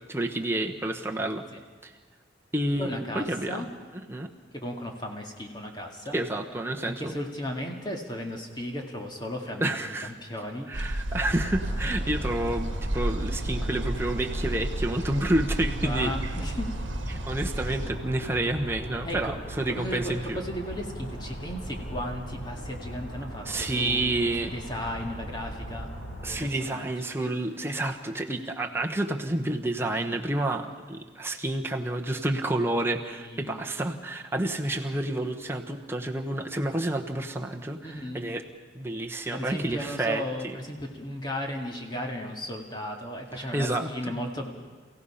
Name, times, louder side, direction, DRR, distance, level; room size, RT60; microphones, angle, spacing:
voice 1, 0.1-1.4 1.8-1.9 2.5-3.6 4.1-4.3 6.1-7.1 9.6-10.1 10.7-16.1 17.1-20.4 23.4-24.5 26.2-38.4 38.7-40.6 43.4-44.2, right 1 dB, 15° right, 2 dB, 1.2 m, -29 dB
voice 2, 2.8-3.7 4.5-6.2 6.9-10.7 15.8-16.7 19.0-19.3 19.7-24.1 24.5-25.9 26.3-27.1 33.2-33.6 37.8-38.3 39.3-44.5, equal, 25° left, 1 dB, 2.0 m, -35 dB
sound 1, 10.7-17.9, right 1 dB, 90° right, 1.3 m, -32 dB
sound 2, 11.1-26.5, equal, 80° left, 6.3 m, -38 dB
28.5 x 16.0 x 5.7 m, 1.5 s
head